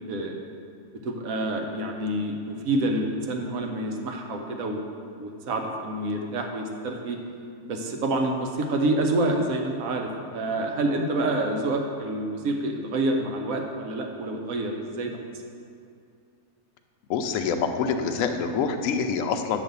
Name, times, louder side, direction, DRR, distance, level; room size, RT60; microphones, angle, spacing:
voice 1, 1.0-4.9 5.2-7.2 7.6-15.2, right 2 dB, 65° right, 2 dB, 1.1 m, -27 dB
voice 2, 17.1-19.6, left 6 dB, 65° left, 6 dB, 0.8 m, -26 dB
8.9 x 3.2 x 6.7 m, 2.4 s
omnidirectional pair, 1.7 m